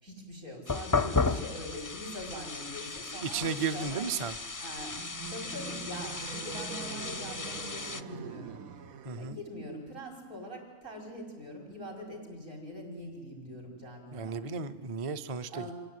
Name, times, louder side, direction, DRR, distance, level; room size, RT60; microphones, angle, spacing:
voice 1, 0.0-4.1 4.6-8.6 9.2-14.4 15.5-15.7, equal, 70° right, 1 dB, 6.3 m, -43 dB
Chopping and frying an onion, 0.7-8.0, left 4 dB, 25° left, 0.4 m, -34 dB
voice 2, 3.2-4.4 9.0-9.4 14.1-15.7, right 5 dB, 35° right, 10 dB, 0.6 m, -34 dB
sound 1, 4.9-9.6, right 6 dB, 90° right, 1.4 m, -44 dB
26.0 x 17.0 x 9.7 m, 1.5 s
omnidirectional pair, 1.4 m